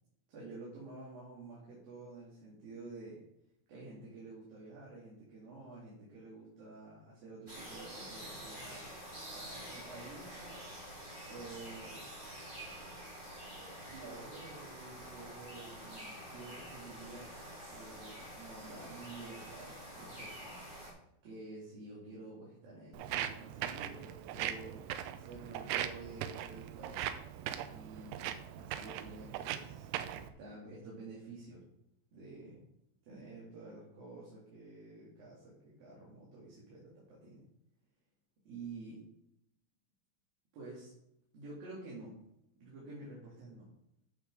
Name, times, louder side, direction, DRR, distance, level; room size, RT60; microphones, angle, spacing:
voice 1, 0.3-3.2 3.7-10.6 11.2-12.0 13.9-17.3 17.6-20.6 21.2-27.0 27.6-31.6 32.1-32.7 33.0-37.5 38.5-39.0 40.5-40.9 41.3-42.2 42.6-43.7, right 3 dB, 55° right, -6 dB, 3.8 m, -50 dB
sound 1, 7.5-20.9, equal, 15° right, 3.0 m, -48 dB
Walk footsteps, 22.9-30.3, right 11 dB, 80° right, 2.4 m, -40 dB
9.5 x 6.5 x 4.8 m, 0.78 s
omnidirectional pair, 5.3 m